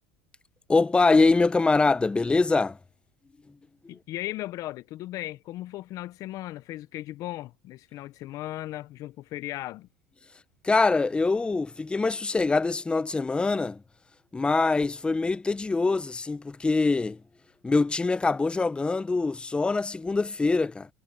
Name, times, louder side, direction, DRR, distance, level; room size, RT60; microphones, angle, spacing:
voice 1, 0.7-2.8 10.6-13.8 14.3-17.2 17.6-20.9, left 3 dB, 15° left, 0.9 m, -24 dB
voice 2, 3.9-9.9, left 15 dB, 55° left, 0.9 m, -37 dB
hypercardioid pair, 90°, 7 cm